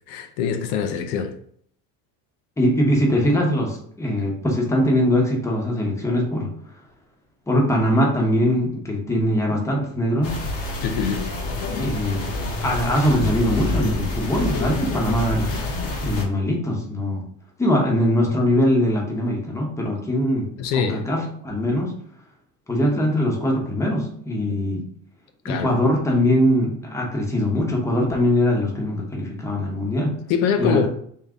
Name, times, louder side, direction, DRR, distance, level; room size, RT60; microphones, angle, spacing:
voice 1, 0.1-1.3 10.8-11.2 20.6-21.0 25.4-25.8 30.3-30.9, left 7 dB, 80° left, 0.6 m, -23 dB
voice 2, 2.6-6.5 7.5-10.4 11.8-12.2 12.6-15.5 16.0-17.2 17.6-20.5 20.7-21.9 22.7-24.8 25.4-30.1 30.6-30.9, equal, 5° left, 0.8 m, -21 dB
sound 1, 10.2-16.2, left 2 dB, 35° left, 0.9 m, -27 dB
3.7 x 2.6 x 3.5 m
cardioid pair, 145°, 39 cm